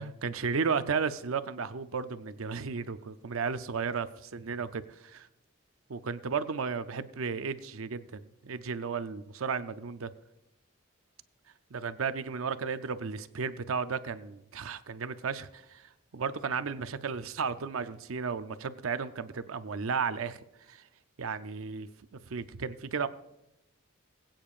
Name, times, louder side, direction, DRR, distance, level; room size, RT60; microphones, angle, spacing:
voice 1, 0.0-5.3 5.9-10.1 11.7-15.8 16.1-20.4 20.7-20.8 21.2-21.9 22.3-23.1, right 5 dB, 85° right, 11 dB, 0.6 m, -34 dB
21.5 x 8.9 x 2.5 m, 0.88 s
head